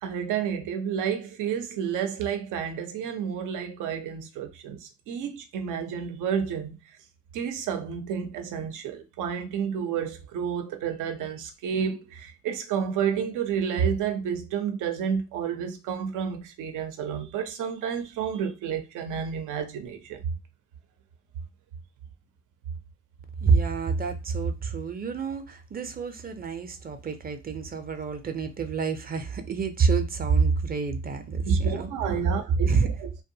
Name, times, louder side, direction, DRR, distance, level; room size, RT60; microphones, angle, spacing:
voice 1, 0.0-6.8 7.3-20.2 31.4-32.7 33.0-33.1, right 7 dB, 90° right, 0.6 m, -30 dB
voice 2, 23.4-31.9 32.7-32.9, right 5 dB, 30° right, 0.5 m, -27 dB
2.6 x 2.2 x 2.6 m
cardioid pair, 90°, 30 cm